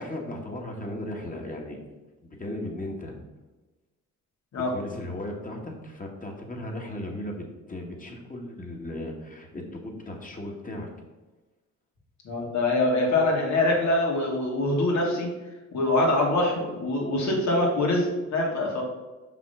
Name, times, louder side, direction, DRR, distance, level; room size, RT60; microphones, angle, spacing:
voice 1, 0.0-1.8 2.2-3.2 4.5-10.9, left 1 dB, 25° left, 1 dB, 2.0 m, -36 dB
voice 2, 12.2-15.3 15.7-18.8, left 2 dB, 65° left, -1 dB, 2.4 m, -24 dB
5.9 x 5.6 x 5.8 m, 1.2 s
cardioid pair, 90°, 30 cm